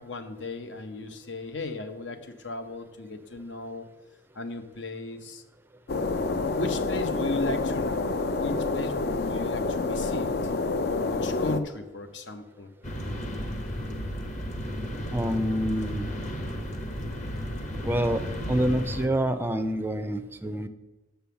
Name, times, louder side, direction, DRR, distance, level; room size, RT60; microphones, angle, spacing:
voice 1, 0.0-3.9 4.3-5.4 6.5-10.3 10.8-12.7, left 2 dB, 75° left, 8 dB, 0.9 m, -36 dB
sound 1, 5.9-11.6, left 3 dB, 60° left, 0.5 m, -28 dB
sound 2, 12.8-19.1, equal, 40° left, 1.0 m, -34 dB
voice 2, 15.1-16.1 17.8-18.2 18.5-20.7, right 1 dB, 10° right, 9 dB, 0.4 m, -27 dB
6.9 x 5.5 x 6.9 m, 1.1 s
head